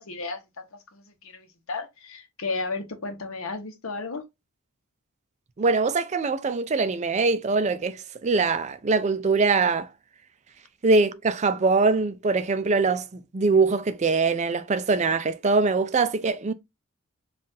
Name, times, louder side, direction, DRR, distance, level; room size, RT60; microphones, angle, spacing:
voice 1, 0.0-4.2, left 3 dB, 65° left, 0.9 m, -34 dB
voice 2, 5.6-9.9 10.8-16.5, right 4 dB, 30° right, 0.4 m, -23 dB
5.5 x 2.4 x 2.6 m
head